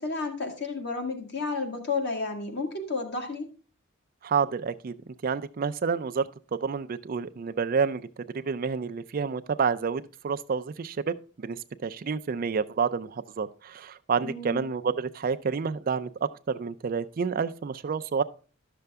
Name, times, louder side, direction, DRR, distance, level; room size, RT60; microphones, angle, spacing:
voice 1, 0.0-3.5 14.2-14.7, left 3 dB, 55° left, 1.8 m, -32 dB
voice 2, 4.2-4.9 5.2-18.2, right 5 dB, 45° right, 0.4 m, -29 dB
11.5 x 6.7 x 3.5 m
head